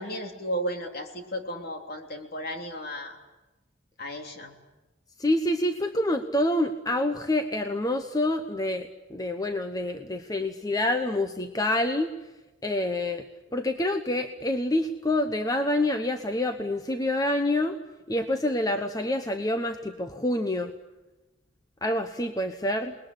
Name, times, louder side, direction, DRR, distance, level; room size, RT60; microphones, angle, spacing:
voice 1, 0.0-3.2 4.0-4.5, equal, 50° left, 4 dB, 3.4 m, -34 dB
voice 2, 5.2-12.1 12.6-13.2 13.5-17.8 18.1-20.7 21.8-23.0, left 1 dB, 20° left, 7 dB, 1.0 m, -27 dB
28.5 x 20.5 x 10.0 m, 1.1 s
head